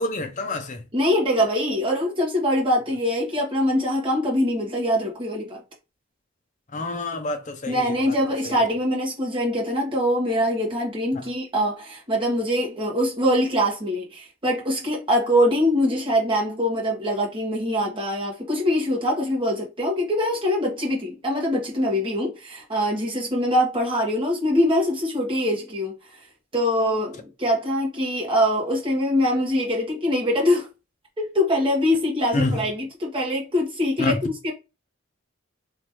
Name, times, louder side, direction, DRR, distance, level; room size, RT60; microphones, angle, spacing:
voice 1, 0.0-0.8 6.7-8.2 8.4-8.6 11.1-11.2 32.3-32.6 34.0-34.2, left 2 dB, 35° left, 0.6 m, -27 dB
voice 2, 0.9-5.6 7.7-25.9 26.5-30.7 31.2-34.5, equal, 25° right, 1.5 m, -23 dB
3.5 x 3.1 x 3.1 m
head